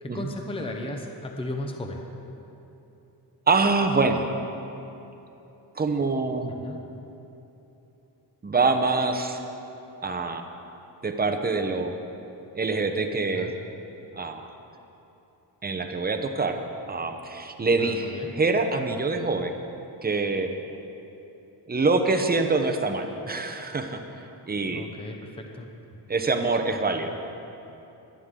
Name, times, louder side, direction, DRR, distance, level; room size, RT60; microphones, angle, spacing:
voice 1, 0.0-2.0 6.5-6.8 13.3-13.5 17.8-18.3 24.7-25.7, left 1 dB, 15° left, 2 dB, 0.9 m, -35 dB
voice 2, 3.5-4.3 5.8-6.6 8.4-9.4 10.0-10.4 11.0-11.9 12.5-13.5 14.1-14.5 15.6-16.6 16.9-19.5 20.0-20.5 21.7-24.0 24.5-24.8 26.1-27.2, right 3 dB, 20° right, 6 dB, 0.8 m, -25 dB
22.0 x 9.8 x 3.8 m, 3.0 s
wide cardioid pair, 145°, 41 cm